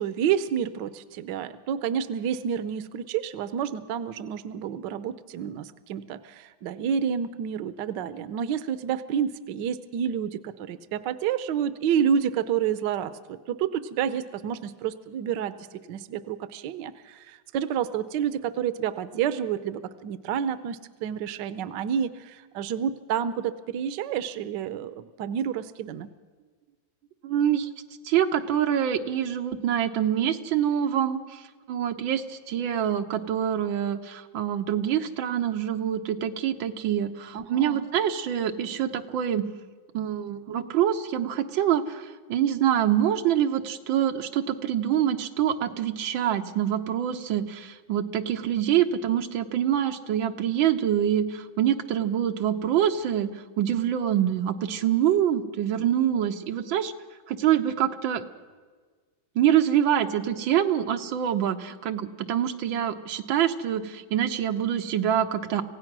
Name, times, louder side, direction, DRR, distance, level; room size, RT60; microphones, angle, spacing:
voice 1, 0.0-15.6 15.9-26.1 37.3-37.9, right 8 dB, 70° right, 14 dB, 1.3 m, -29 dB
voice 2, 27.2-27.7 28.0-31.4 31.7-39.5 39.9-53.3 53.6-56.9 57.3-58.2 59.3-65.6, right 10 dB, 90° right, 7 dB, 1.8 m, -25 dB
26.5 x 16.5 x 6.1 m, 1.5 s
omnidirectional pair, 2.1 m